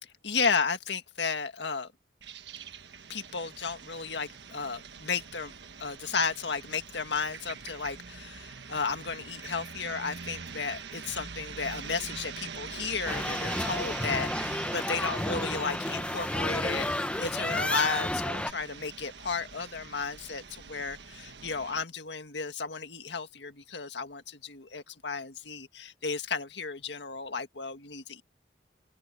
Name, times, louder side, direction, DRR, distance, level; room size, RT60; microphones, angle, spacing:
voice 1, 0.0-1.9 3.1-5.5 5.8-28.2, left 5 dB, 85° left, 1.8 m, -33 dB
sound 1, 2.2-21.8, right 6 dB, 85° right, 1.4 m, -44 dB
sound 2, 13.1-18.5, left 1 dB, 5° left, 0.8 m, -31 dB
open air
head